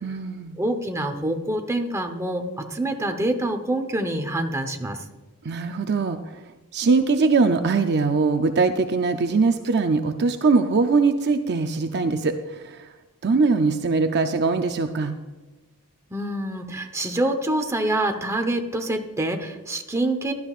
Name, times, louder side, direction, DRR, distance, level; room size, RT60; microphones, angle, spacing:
voice 1, 0.0-0.6 5.4-6.2 6.7-12.8 13.2-15.1, right 4 dB, 50° right, 7 dB, 0.5 m, -21 dB
voice 2, 0.6-5.0 16.1-20.3, right 1 dB, 15° right, 4 dB, 1.0 m, -26 dB
16.5 x 12.0 x 2.5 m, 1.2 s
head